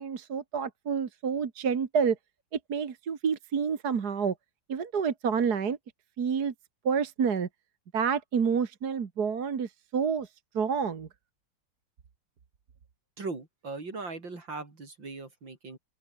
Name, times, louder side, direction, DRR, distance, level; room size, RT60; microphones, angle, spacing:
voice 1, 0.0-2.2 2.7-4.3 4.7-5.8 6.2-6.5 6.8-7.5 7.9-10.3 10.5-11.1, right 6 dB, 55° right, 2.2 m, -28 dB
voice 2, 13.2-15.8, right 3 dB, 80° right, 5.3 m, -39 dB
open air
omnidirectional pair, 2.0 m